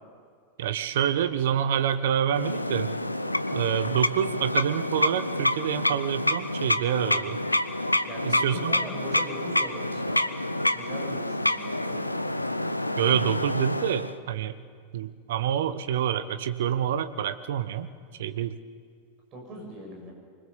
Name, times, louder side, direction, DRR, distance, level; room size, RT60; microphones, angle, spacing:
voice 1, 0.6-2.9 3.5-7.4 8.2-8.7 13.0-14.6 14.9-17.9 18.2-18.6, right 9 dB, 55° right, 11 dB, 1.1 m, -27 dB
sound 1, 2.3-14.1, left 1 dB, 85° left, 0.7 m, -28 dB
voice 2, 8.1-10.3 10.7-12.1 19.3-20.1, right 1 dB, 35° right, 0 dB, 7.7 m, -40 dB
25.0 x 20.0 x 7.1 m, 2.1 s
figure-of-eight pair, 90°, 0 cm